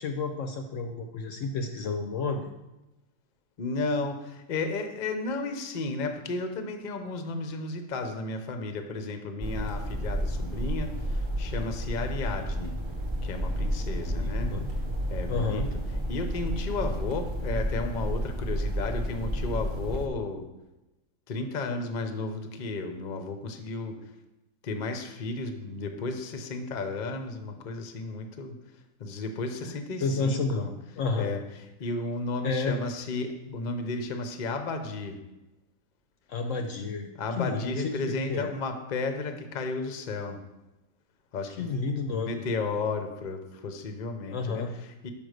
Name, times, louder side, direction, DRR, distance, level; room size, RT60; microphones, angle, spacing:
voice 1, 0.0-2.5 14.1-14.7 15.3-15.7 30.0-30.7 31.0-31.3 32.4-32.8 36.3-37.1 37.4-38.5 41.6-42.4 44.3-44.7, left 4 dB, 65° left, 5 dB, 0.9 m, -30 dB
voice 2, 3.6-12.8 13.2-14.5 15.1-15.7 16.1-20.5 21.3-24.1 24.6-28.6 29.0-30.7 31.2-31.4 31.8-35.2 37.1-40.4 41.3-41.7 42.1-45.1, left 3 dB, 45° left, 6 dB, 0.7 m, -33 dB
sound 1, 9.4-20.1, equal, 30° right, 0.5 m, -31 dB
5.8 x 5.2 x 6.4 m, 0.98 s
omnidirectional pair, 1.6 m